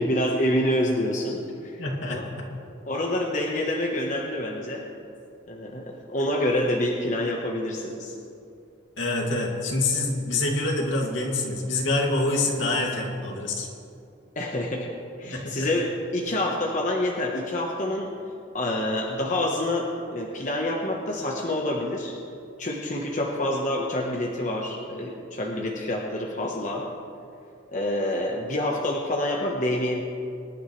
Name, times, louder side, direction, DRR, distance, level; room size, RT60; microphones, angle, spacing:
voice 1, 0.0-1.8 2.1-2.2 2.9-4.8 5.5-8.1 14.3-14.9 15.2-18.1 18.5-22.2 22.6-26.9 27.7-30.0, left 1 dB, 40° left, -1 dB, 1.3 m, -27 dB
voice 2, 1.8-2.5 9.0-13.7 15.2-15.5, left 2 dB, 75° left, -1 dB, 2.5 m, -26 dB
24.5 x 11.5 x 3.3 m, 2.6 s
head